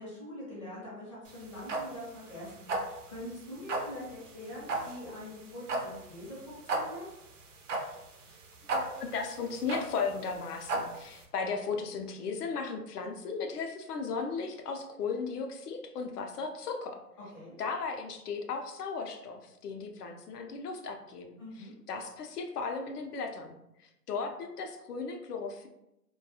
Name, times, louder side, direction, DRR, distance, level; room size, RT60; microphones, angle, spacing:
voice 1, 0.0-7.1 17.3-17.6 21.4-21.8, left 1 dB, 20° left, -7 dB, 0.6 m, -44 dB
sound 1, 1.3-11.2, right 2 dB, 55° right, 0.5 m, -36 dB
voice 2, 8.6-17.0 17.6-25.7, left 5 dB, 70° left, 4 dB, 0.6 m, -36 dB
2.3 x 2.2 x 2.7 m, 0.86 s
hypercardioid pair, 160°, 48 cm